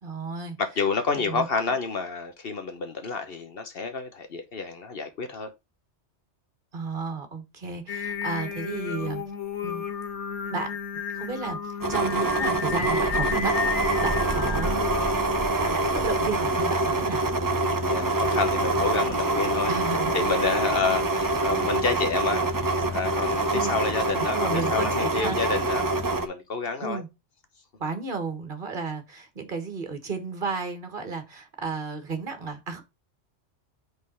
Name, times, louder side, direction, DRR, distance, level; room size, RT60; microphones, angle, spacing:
voice 1, 0.0-0.6 1.1-1.5 6.7-9.2 9.6-9.8 10.5-10.8 11.1-14.9 15.6-17.2 19.7-20.1 23.5-23.9 24.3-25.4 26.8-27.1 27.8-32.8, right 4 dB, 50° right, 1.6 m, -33 dB
voice 2, 0.6-5.5 17.9-19.7 20.1-22.5 22.9-25.9 26.2-27.0, left 4 dB, 60° left, 1.1 m, -29 dB
Singing, 7.9-15.5, left 6 dB, 85° left, 1.6 m, -32 dB
sound 1, 11.8-26.3, right 2 dB, 20° right, 0.6 m, -25 dB
5.3 x 4.0 x 5.4 m
omnidirectional pair, 1.2 m